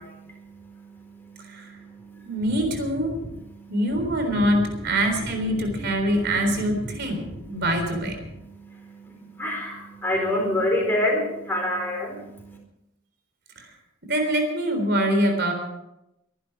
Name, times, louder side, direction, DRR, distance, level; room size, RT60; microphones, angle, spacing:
voice 1, 0.0-2.3 3.5-3.7 4.3-4.5 5.5-5.6 7.2-7.4 8.4-12.6, left 1 dB, 10° left, 0 dB, 4.3 m, -29 dB
voice 2, 1.4-1.7 2.2-3.1 3.7-8.2 13.6-13.7 14.1-15.5, equal, 50° right, 5 dB, 3.8 m, -24 dB
22.5 x 11.0 x 4.7 m, 0.87 s
head